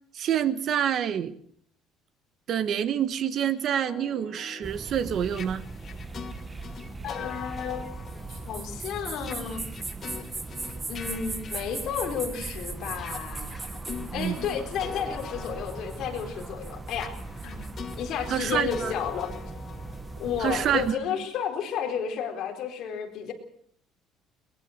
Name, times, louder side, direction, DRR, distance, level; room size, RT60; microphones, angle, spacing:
voice 1, 0.1-1.3 2.5-5.6 14.1-14.4 18.3-18.9 20.4-20.9, right 9 dB, 40° right, 13 dB, 1.3 m, -27 dB
sound 1, 3.6-12.4 12.9-20.7, left 7 dB, 30° left, 1.6 m, -43 dB
sound 2, 4.6-20.9, right 3 dB, 15° right, 1.2 m, -38 dB
voice 2, 7.0-7.9 8.3-9.7 10.9-13.5 14.1-17.1 17.4-17.7 18.0-19.3 20.2-23.3, left 7 dB, 50° left, 4 dB, 4.2 m, -32 dB
22.0 x 20.5 x 6.6 m, 0.65 s
cardioid pair, 165°, 0 cm